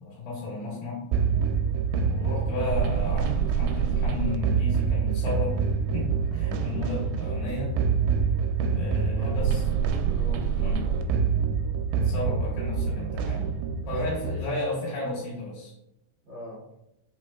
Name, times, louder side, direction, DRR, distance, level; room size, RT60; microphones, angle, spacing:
voice 1, 0.0-1.0 2.0-5.7 5.9-7.8 8.7-9.6 10.6-10.8 11.9-13.5 13.9-15.7, left 2 dB, 75° left, -6 dB, 3.1 m, -33 dB
sound 1, 1.1-14.4, right 6 dB, 85° right, 2.4 m, -26 dB
voice 2, 9.6-11.0 12.7-13.1 13.8-14.6 16.2-16.6, equal, 50° right, -9 dB, 1.4 m, -44 dB
5.9 x 3.4 x 2.3 m, 0.83 s
omnidirectional pair, 4.3 m